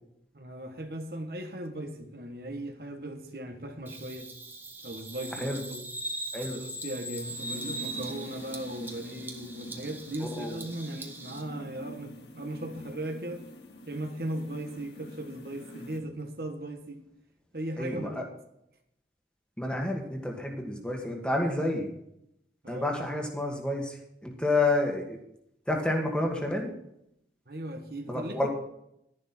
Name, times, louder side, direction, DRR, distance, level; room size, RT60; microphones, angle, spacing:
voice 1, 0.3-4.3 4.8-5.8 6.5-13.4 13.9-17.0 17.5-18.3 22.6-22.9 27.5-28.5, right 1 dB, 60° right, 5 dB, 1.4 m, -38 dB
Bird vocalization bird call bird song, 3.9-11.4, right 2 dB, 10° right, 1.0 m, -40 dB
sound 1, 6.5-16.0, left 1 dB, 75° left, 2.1 m, -46 dB
voice 2, 10.2-10.5 17.8-18.2 19.6-21.9 22.7-24.0 24.2-25.2 25.7-26.7 28.1-28.5, left 2 dB, 5° left, 1 dB, 1.7 m, -29 dB
12.0 x 10.5 x 4.4 m, 0.78 s
head